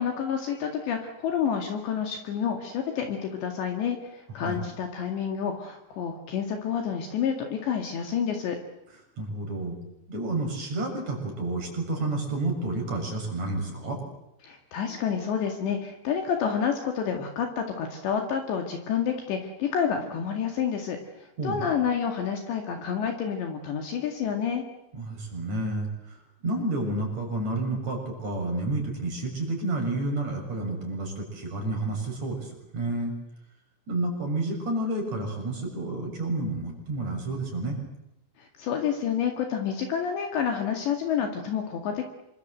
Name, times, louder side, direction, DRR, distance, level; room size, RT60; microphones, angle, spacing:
voice 1, 0.0-8.6 14.4-24.6 38.4-42.1, left 7 dB, 65° left, 4 dB, 4.1 m, -29 dB
voice 2, 9.2-9.8 10.1-14.0 21.4-21.7 24.9-26.2 26.4-33.1 33.9-37.8, right 2 dB, 35° right, 2 dB, 7.6 m, -30 dB
27.5 x 23.5 x 8.0 m, 0.88 s
omnidirectional pair, 5.9 m